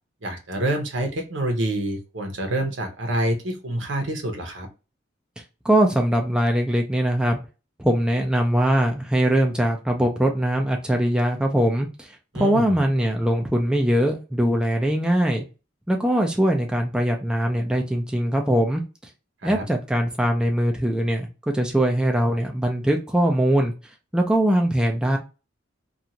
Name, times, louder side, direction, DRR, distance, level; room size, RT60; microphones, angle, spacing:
voice 1, 0.2-4.7 12.3-12.7 19.4-19.7, right 1 dB, 70° right, 4 dB, 0.8 m, -27 dB
voice 2, 5.6-7.4 7.8-12.1 12.4-15.4 15.9-18.8 19.4-23.7 24.1-25.2, right 1 dB, 5° right, 1 dB, 0.4 m, -21 dB
2.5 x 2.4 x 2.8 m, 0.31 s
head